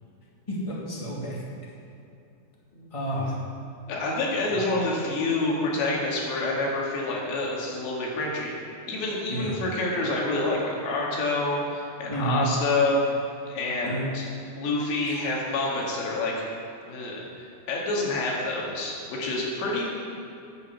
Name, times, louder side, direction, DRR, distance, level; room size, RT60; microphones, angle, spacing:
voice 1, 0.5-1.4 2.9-3.4 4.5-4.6 9.3-9.5 12.1-12.4 13.8-14.1 15.1-15.2, right 1 dB, 10° left, -5 dB, 1.6 m, -30 dB
voice 2, 3.9-8.6 8.9-13.0 13.5-14.2 14.6-16.3 16.9-19.9, left 2 dB, 90° left, -3 dB, 4.4 m, -27 dB
11.5 x 8.2 x 8.3 m, 2.6 s
omnidirectional pair, 4.9 m